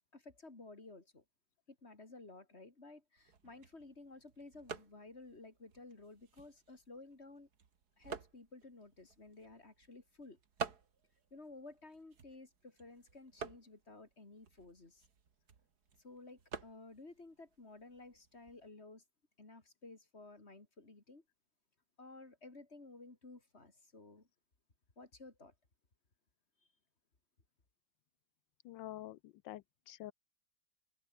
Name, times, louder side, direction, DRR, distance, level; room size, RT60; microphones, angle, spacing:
voice 1, 0.1-1.2 1.7-7.5 8.0-10.4 11.3-15.0 16.0-19.0 19.4-21.2 22.0-24.3 25.0-25.5, left 3 dB, 30° left, 3.4 m, -54 dB
sound 1, 3.2-18.7, right 6 dB, 50° right, 2.4 m, -51 dB
voice 2, 28.6-30.1, left 14 dB, 75° left, 1.2 m, -48 dB
omnidirectional pair, 2.2 m